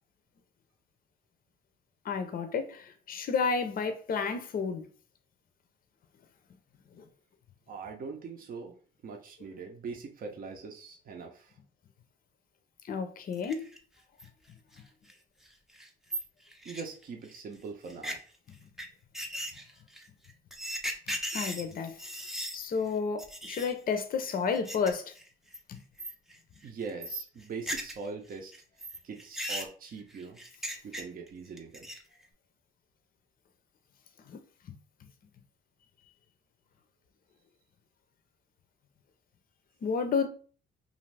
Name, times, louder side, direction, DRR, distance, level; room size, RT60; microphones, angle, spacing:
voice 1, 2.0-4.9 7.0-7.1 12.8-13.6 21.3-21.9 22.5-25.1 25.7-25.8 34.3-34.4 39.8-40.3, left 5 dB, 45° left, 0.5 m, -31 dB
voice 2, 7.7-8.8 9.0-11.6 16.6-18.2 26.6-28.5 29.0-30.4 30.8-31.9, right 5 dB, 45° right, 0.6 m, -42 dB
sound 1, 13.3-13.8 14.2-14.3 14.7-14.8 15.1-15.2 15.5-15.6 15.7-17.3 17.9-18.1 18.8-18.9 19.1-22.6 22.9-23.0 23.2-23.7 24.3-24.9 25.1-25.6 26.0-26.4 26.6-28.1 28.3-31.3 31.6-32.1, equal, ahead, 0.5 m, -37 dB
2.6 x 2.5 x 3.2 m
cardioid pair, 90°, 20 cm